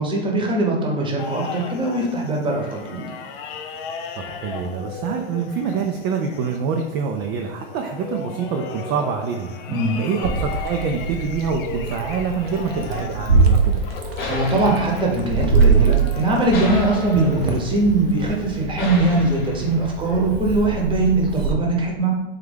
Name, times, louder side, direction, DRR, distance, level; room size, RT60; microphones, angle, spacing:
voice 1, 0.0-3.2 9.7-10.0 14.3-22.1, right 2 dB, 15° right, 0 dB, 1.0 m, -21 dB
sound 1, 1.2-18.6, left 5 dB, 60° left, 0.6 m, -37 dB
voice 2, 4.1-9.5 10.0-13.8, right 6 dB, 40° right, 3 dB, 0.4 m, -26 dB
Meow, 10.2-21.5, right 4 dB, 85° right, 0.8 m, -23 dB
sound 2, 12.6-20.0, left 2 dB, 35° left, 0.9 m, -34 dB
3.6 x 3.2 x 3.5 m, 0.99 s
hypercardioid pair, 110°, 30 cm